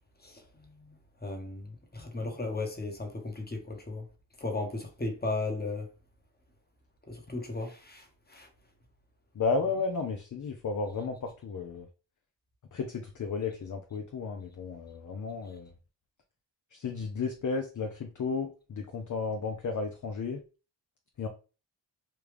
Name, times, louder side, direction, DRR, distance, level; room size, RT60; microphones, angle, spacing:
voice 1, 1.2-4.0 4.4-5.9 7.1-8.5, left 2 dB, 20° left, 1.1 m, -35 dB
voice 2, 9.3-11.9 12.7-15.7 16.7-20.4 21.2-21.3, left 4 dB, 40° left, 0.6 m, -33 dB
3.3 x 2.3 x 3.3 m
cardioid pair, 45°, 47 cm